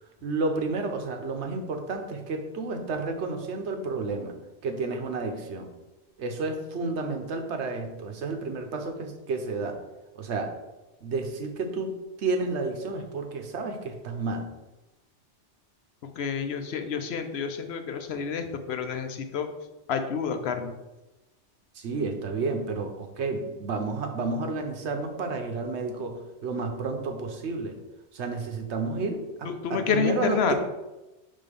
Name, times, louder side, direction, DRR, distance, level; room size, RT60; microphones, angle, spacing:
voice 1, 0.2-4.4 4.6-5.7 6.2-9.8 10.2-10.5 11.0-14.5 21.7-27.8 28.1-30.5, right 3 dB, 75° right, 5 dB, 1.1 m, -31 dB
voice 2, 16.2-19.5 19.9-20.7 29.4-30.5, left 6 dB, 70° left, 7 dB, 0.8 m, -29 dB
5.5 x 3.7 x 5.2 m, 1.1 s
omnidirectional pair, 1.2 m